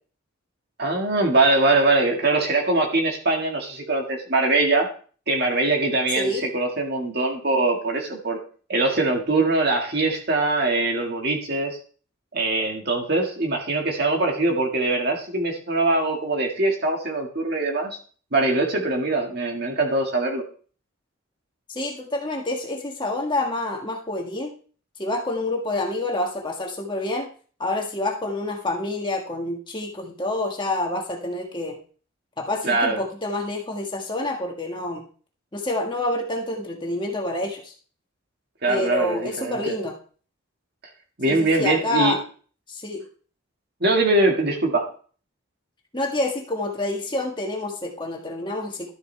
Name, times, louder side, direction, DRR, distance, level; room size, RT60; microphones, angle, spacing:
voice 1, 0.8-4.9 5.3-8.4 8.7-11.8 12.3-18.0 18.3-20.4 32.6-33.0 38.6-39.8 41.2-42.2 43.8-44.9, right 2 dB, 50° right, 1 dB, 1.9 m, -22 dB
voice 2, 21.7-24.5 25.0-27.3 27.6-31.8 32.4-35.0 35.5-37.7 38.7-39.9 41.3-42.2 42.7-43.0 45.9-48.9, left 2 dB, 20° left, 0 dB, 1.5 m, -28 dB
12.5 x 8.0 x 3.4 m, 0.42 s
head